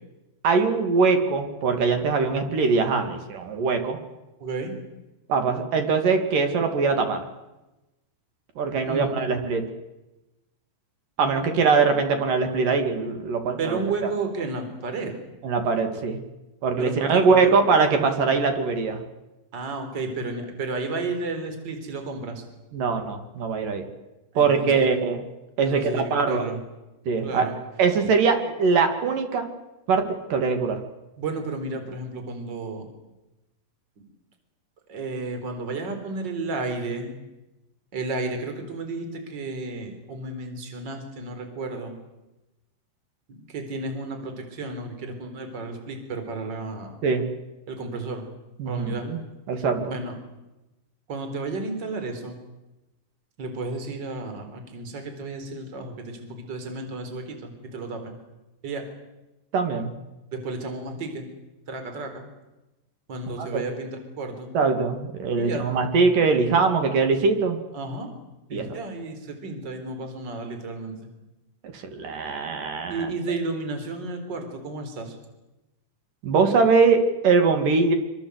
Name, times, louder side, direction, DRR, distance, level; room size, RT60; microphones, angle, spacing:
voice 1, 0.4-4.0 5.3-7.2 8.6-9.6 11.2-13.8 15.4-16.2 16.6-19.0 22.7-23.8 24.4-25.2 25.6-26.4 27.1-27.5 27.8-29.5 29.9-30.0 30.3-30.8 47.0-47.2 48.6-49.2 49.5-49.9 59.5-59.9 63.4-63.6 64.5-67.6 68.5-68.7 71.7-73.1 76.2-77.9, right 4 dB, 50° right, 6 dB, 3.4 m, -22 dB
voice 2, 4.4-4.7 8.8-9.1 11.2-11.6 13.6-15.1 16.8-17.5 19.5-22.4 24.3-24.9 25.6-26.6 27.2-27.6 31.2-32.9 34.0-34.1 34.9-37.2 37.9-41.9 43.3-47.0 47.7-48.2 48.6-49.1 49.8-50.2 51.1-52.4 53.4-58.1 58.6-58.9 60.3-61.2 61.7-62.3 63.1-64.5 65.4-65.7 67.7-68.1 68.5-71.1 72.9-75.2, right 3 dB, 25° right, 6 dB, 3.9 m, -32 dB
25.0 x 25.0 x 8.1 m, 1.0 s
omnidirectional pair, 5.6 m